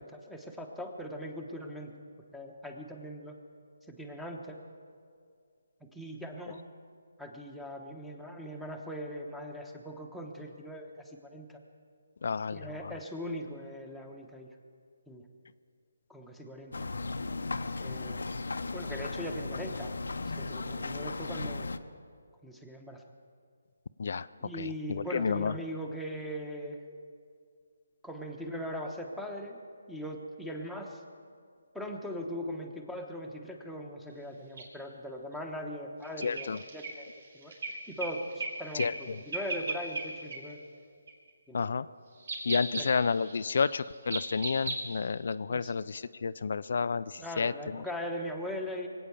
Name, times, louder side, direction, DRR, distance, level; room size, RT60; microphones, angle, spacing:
voice 1, 0.0-1.9 2.3-3.4 3.9-4.6 5.8-6.6 7.2-11.6 12.5-14.5 15.1-15.2 16.1-16.9 17.7-18.2 18.7-20.0 20.2-21.7 22.4-23.0 24.4-26.8 28.0-29.6 29.9-31.0 31.7-37.1 37.3-37.5 37.9-40.6 41.5-41.8 42.8-42.9 45.5-45.7 47.2-48.9, equal, ahead, 1 dB, 1.1 m, -40 dB
voice 2, 12.2-12.9 24.0-24.3 24.6-25.5 36.2-36.6 38.7-39.2 41.5-41.9 42.5-47.8, left 5 dB, 60° left, 14 dB, 0.3 m, -31 dB
sound 1, 16.7-21.8, left 3 dB, 80° left, 0.8 m, -36 dB
sound 2, 34.6-34.7 36.0-38.5 38.8-39.0 39.3-40.0 40.3-40.4 41.1-41.3 42.2-45.1, right 3 dB, 65° right, 3.6 m, -37 dB
22.5 x 8.7 x 7.0 m, 2.2 s
hypercardioid pair, 165°, 0 cm